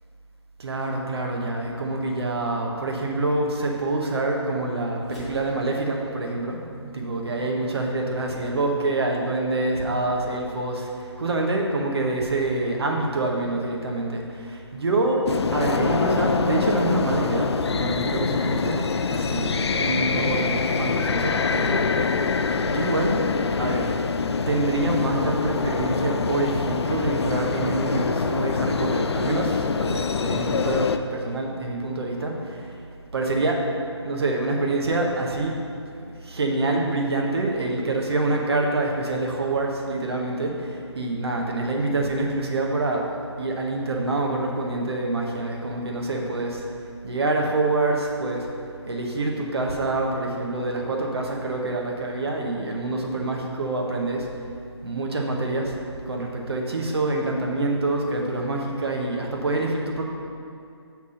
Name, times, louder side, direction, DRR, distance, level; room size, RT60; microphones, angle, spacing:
voice 1, 0.6-6.6 6.9-15.2 15.5-23.2 23.6-23.9 24.5-32.8 33.1-33.6 34.0-35.6 36.2-46.6 47.0-48.5 48.9-54.3 54.8-55.8 56.1-60.0, right 2 dB, 60° right, 0 dB, 1.2 m, -26 dB
sound 1, 5.0-9.6, right 1 dB, ahead, 1.5 m, -47 dB
sound 2, 15.3-31.0, left 5 dB, 65° left, 0.4 m, -25 dB
5.9 x 4.4 x 6.3 m, 2.5 s
figure-of-eight pair, 160°, 15 cm